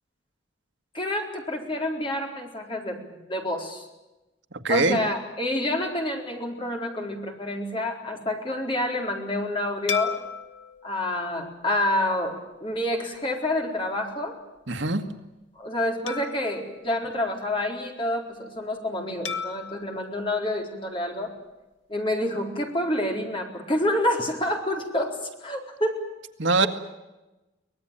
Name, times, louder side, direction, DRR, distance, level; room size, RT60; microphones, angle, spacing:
voice 1, 0.9-3.9 4.7-10.2 10.8-14.4 15.6-21.3 21.9-26.0, left 1 dB, 25° left, 2 dB, 4.2 m, -28 dB
voice 2, 4.6-5.0 14.7-15.0 26.4-26.7, right 3 dB, 75° right, 7 dB, 1.8 m, -22 dB
sound 1, 9.9-12.6 13.1-13.3 16.1-17.9 19.3-21.5, left 6 dB, 90° left, 1.8 m, -37 dB
24.5 x 19.0 x 9.0 m, 1.0 s
head